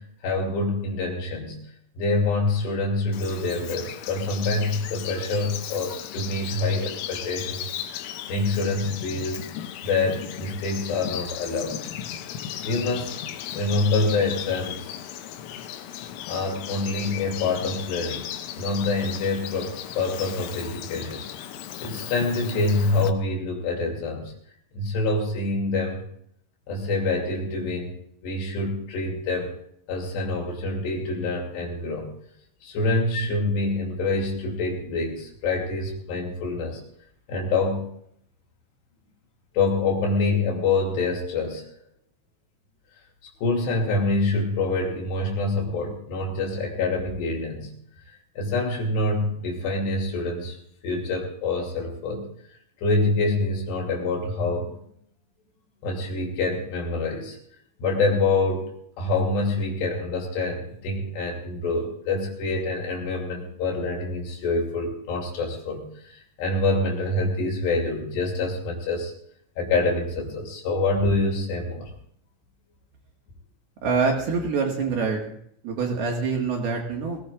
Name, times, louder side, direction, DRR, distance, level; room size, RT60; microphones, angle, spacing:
voice 1, 0.0-1.6 2.0-8.0 8.3-9.4 9.8-11.8 12.6-13.1 13.5-14.9 16.3-21.2 21.8-24.3 24.7-26.1 26.7-28.0 28.2-29.5 29.9-32.1 32.6-36.8 37.3-37.9 39.5-41.6 43.4-47.7 48.4-50.6 50.8-52.3 52.8-54.7 55.8-57.4 57.8-58.7 59.0-69.1 69.6-71.9, left 3 dB, 60° left, 0 dB, 4.5 m, -26 dB
Bird vocalization bird call bird song, 3.1-23.1, left 10 dB, 90° left, 3.6 m, -36 dB
voice 2, 73.8-75.4 75.6-77.2, right 4 dB, 60° right, 1 dB, 3.0 m, -25 dB
20.0 x 17.0 x 2.4 m, 0.69 s
omnidirectional pair, 5.9 m